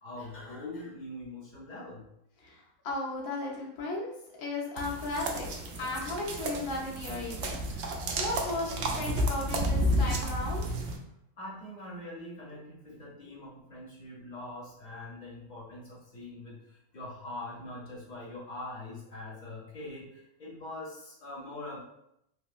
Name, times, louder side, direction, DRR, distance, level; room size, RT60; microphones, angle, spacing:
voice 1, 0.0-2.0 11.4-21.8, left 1 dB, 35° left, -4 dB, 0.8 m, -43 dB
voice 2, 2.4-4.1 4.4-5.5 5.8-10.8, left 2 dB, 75° left, -2 dB, 1.3 m, -36 dB
sound 1, 4.8-11.0, equal, 65° right, 0.7 m, -31 dB
3.5 x 2.8 x 2.4 m, 0.79 s
omnidirectional pair, 1.6 m